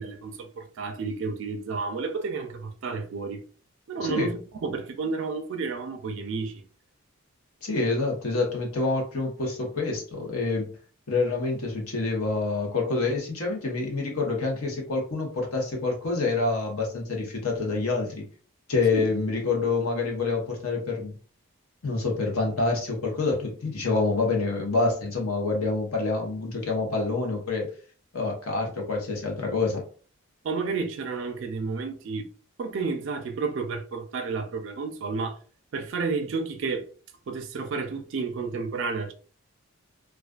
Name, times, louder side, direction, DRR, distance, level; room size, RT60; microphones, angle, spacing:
voice 1, 0.0-3.4 3.9-6.6 18.9-19.1 30.4-32.3 32.6-35.4 35.7-36.9 37.3-39.1, right 4 dB, 55° right, 0.3 m, -31 dB
voice 2, 7.6-10.7 11.1-18.3 18.7-21.2 21.8-27.7 28.1-29.8, left 3 dB, 75° left, 0.9 m, -27 dB
2.3 x 2.3 x 2.3 m
head